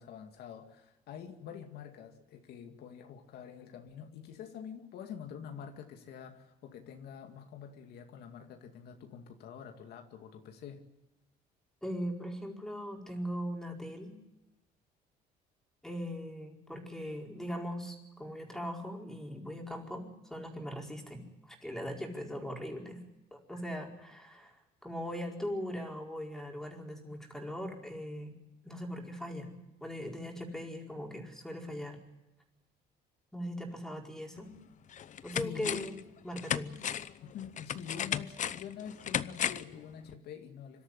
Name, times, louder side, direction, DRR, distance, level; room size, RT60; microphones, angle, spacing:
voice 1, 0.0-10.9 23.5-23.6 35.4-35.8 37.2-40.8, left 7 dB, 75° left, 5 dB, 2.2 m, -46 dB
voice 2, 11.8-14.2 15.8-23.0 23.3-28.4 28.6-29.6 29.8-32.0 33.3-34.5 35.2-35.9 36.2-36.8, equal, 5° left, 0 dB, 4.8 m, -40 dB
sound 1, 34.4-34.5 34.9-36.0 36.4-39.8 40.1-40.2, left 9 dB, 50° left, 0.8 m, -35 dB
25.0 x 13.0 x 9.9 m, 1.0 s
cardioid pair, 110°, 17 cm